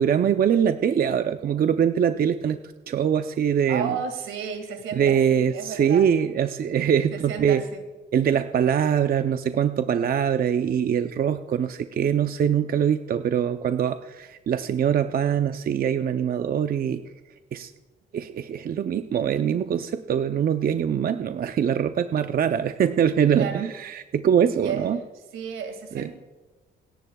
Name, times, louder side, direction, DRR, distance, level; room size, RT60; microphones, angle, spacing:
voice 1, 0.0-2.6 2.9-3.9 4.9-7.6 8.1-17.0 17.5-17.7 18.1-25.0 25.9-26.1, right 8 dB, 50° right, 9 dB, 0.6 m, -23 dB
voice 2, 3.7-6.0 7.1-7.8 23.3-23.7 24.6-24.9 25.3-26.2, right 7 dB, 80° right, 6 dB, 2.0 m, -32 dB
28.0 x 10.5 x 2.3 m, 1.2 s
cardioid pair, 90°, 20 cm